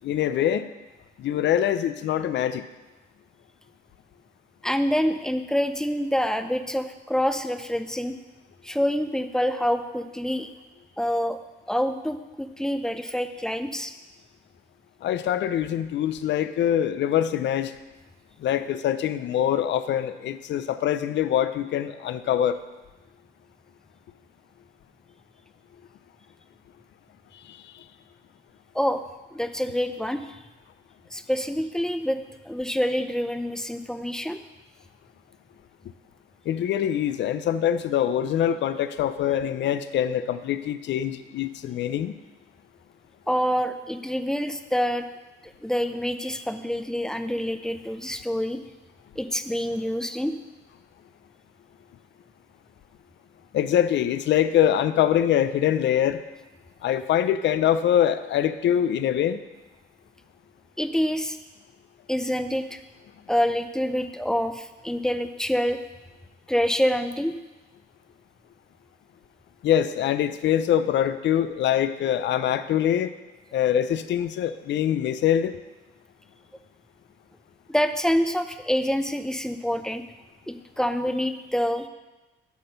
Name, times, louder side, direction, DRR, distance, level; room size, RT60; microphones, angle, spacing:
voice 1, 0.0-0.7 1.2-2.6 15.0-17.7 18.4-22.6 36.5-42.1 53.5-56.2 56.8-59.4 69.6-73.1 73.5-75.6, left 10 dB, 65° left, 12 dB, 0.5 m, -24 dB
voice 2, 4.6-8.1 8.6-10.5 11.0-11.4 11.7-13.9 28.7-29.0 29.3-30.4 31.1-32.2 32.4-34.4 43.3-45.1 45.4-48.6 49.2-50.3 60.8-61.4 62.1-62.8 63.3-65.8 66.5-67.4 77.7-80.0 80.5-81.9, equal, 5° left, 9 dB, 0.5 m, -26 dB
8.3 x 4.2 x 5.7 m, 1.1 s
cardioid pair, 90°, 20 cm